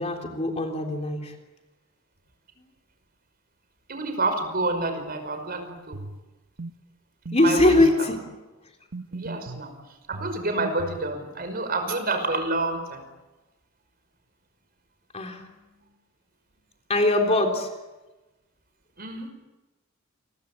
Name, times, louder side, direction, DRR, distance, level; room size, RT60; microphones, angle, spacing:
voice 1, 0.0-1.4 2.6-2.7 7.3-8.2 15.1-15.6 16.9-17.7, left 2 dB, 30° left, 3 dB, 3.6 m, -22 dB
voice 2, 3.9-6.0 7.4-7.8 9.1-9.7 10.1-13.0 19.0-19.3, right 2 dB, 45° right, 7 dB, 5.5 m, -28 dB
sound 1, 5.9-6.2 6.6-6.8 7.3-8.0 8.9-9.7 10.1-11.1, right 2 dB, 60° right, 1.1 m, -36 dB
29.0 x 23.0 x 8.6 m, 1.1 s
head